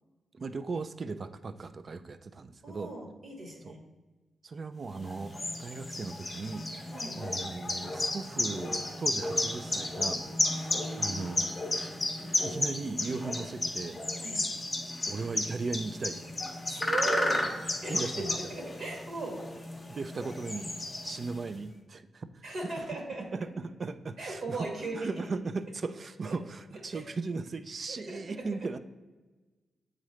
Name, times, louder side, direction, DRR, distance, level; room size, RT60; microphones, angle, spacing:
voice 1, 0.3-2.9 3.6-3.7 4.4-6.7 7.2-10.2 10.7-11.5 12.4-14.0 15.1-16.2 17.9-18.3 19.9-20.8 21.0-22.7 23.3-24.7 24.9-28.8, right 4 dB, 45° right, 12 dB, 0.4 m, -37 dB
voice 2, 2.6-3.8 6.9-7.2 14.2-14.5 16.7-17.5 17.8-19.4 22.4-23.3 24.2-25.3 26.2-26.4 26.9-27.0 27.9-28.5, right 3 dB, 60° right, 0 dB, 1.8 m, -38 dB
sound 1, 4.9-21.5, left 2 dB, 20° left, 0.8 m, -33 dB
8.6 x 3.8 x 3.1 m, 1.2 s
cardioid pair, 105°, 0 cm